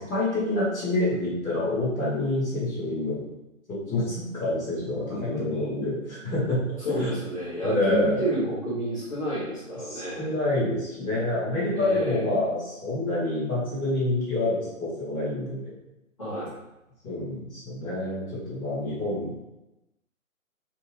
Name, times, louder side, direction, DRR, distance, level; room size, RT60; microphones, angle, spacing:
voice 1, 0.0-3.2 3.7-7.1 7.6-8.2 9.9-15.7 17.0-19.3, left 2 dB, 5° left, -21 dB, 1.0 m, -27 dB
voice 2, 5.1-5.8 6.8-10.3 11.7-12.5 16.2-16.6, right 1 dB, 25° left, -13 dB, 0.8 m, -30 dB
3.6 x 2.8 x 2.6 m, 0.95 s
hypercardioid pair, 170°, 41 cm